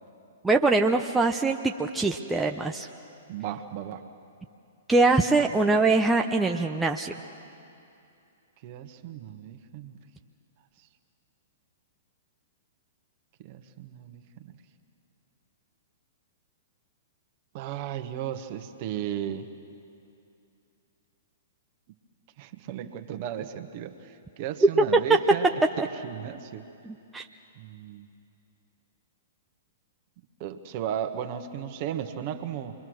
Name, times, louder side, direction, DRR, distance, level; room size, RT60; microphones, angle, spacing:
voice 1, 0.4-2.9 4.9-7.1 25.8-25.9 26.8-27.3, right 3 dB, 10° right, 2 dB, 0.8 m, -23 dB
voice 2, 3.3-4.0 8.6-10.0 13.4-14.5 17.5-19.5 22.4-25.5 26.0-26.6 27.6-28.1 30.4-32.7, right 10 dB, 45° right, 7 dB, 1.5 m, -35 dB
27.5 x 23.0 x 6.5 m, 2.6 s
figure-of-eight pair, 115°, 0 cm